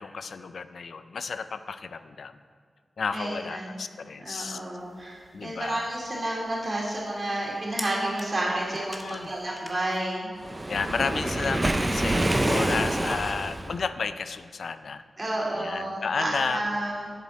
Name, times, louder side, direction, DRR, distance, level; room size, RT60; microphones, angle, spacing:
voice 1, 0.0-2.4 3.0-4.6 5.3-5.9 8.7-9.3 10.7-15.0 15.5-16.6, left 5 dB, 75° left, 12 dB, 0.3 m, -32 dB
voice 2, 3.1-3.7 4.2-10.3 15.2-17.1, right 1 dB, 40° right, -4 dB, 2.8 m, -30 dB
sound 1, 4.8-10.1, equal, 5° left, 1.0 m, -46 dB
Waves surf, 10.4-13.8, right 1 dB, 20° right, 0.5 m, -26 dB
11.0 x 7.3 x 4.2 m, 2.1 s
wide cardioid pair, 95°, 0 cm